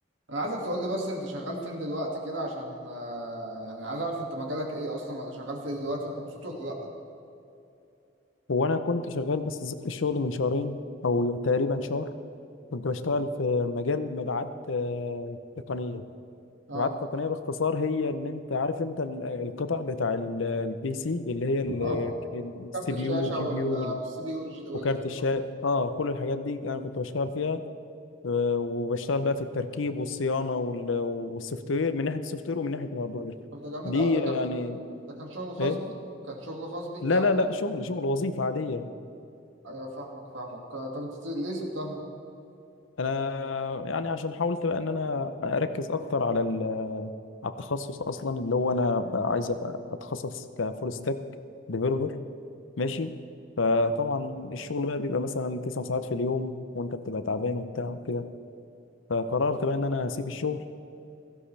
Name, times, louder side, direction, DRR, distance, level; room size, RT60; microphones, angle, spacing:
voice 1, 0.3-6.9 16.7-16.9 21.7-22.1 22.7-24.9 33.5-34.4 35.0-35.9 36.2-37.2 39.6-42.0, right 1 dB, 80° right, 0 dB, 2.2 m, -34 dB
voice 2, 8.5-12.1 12.7-15.4 15.7-16.0 16.7-24.0 24.7-27.6 28.2-33.3 33.8-34.8 35.6-35.8 37.0-38.9 43.0-47.1 47.4-51.2 51.7-52.2 52.8-53.1 53.6-58.3 59.1-60.6, left 3 dB, 85° left, 10 dB, 0.7 m, -29 dB
17.0 x 15.0 x 3.4 m, 2.7 s
head